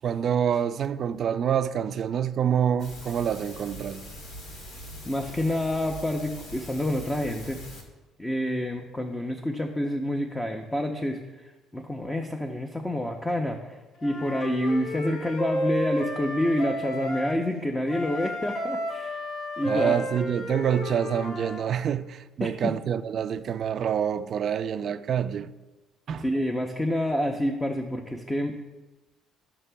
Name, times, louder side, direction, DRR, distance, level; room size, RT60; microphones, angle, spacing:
voice 1, 0.0-4.0 19.7-25.5 26.1-26.2, right 8 dB, 50° right, 0.4 m, -27 dB
sound 1, 2.8-7.8, left 1 dB, 80° left, 2.1 m, -42 dB
voice 2, 5.0-7.6 8.2-19.2 19.6-20.0 22.4-22.7 24.9-25.0 26.2-28.6, left 1 dB, 10° left, 0.6 m, -28 dB
Wind instrument woodwind instrument, 14.0-17.4 17.9-21.7, left 1 dB, 60° left, 1.1 m, -32 dB
14.0 x 5.9 x 2.2 m
cardioid pair, 115°, 0 cm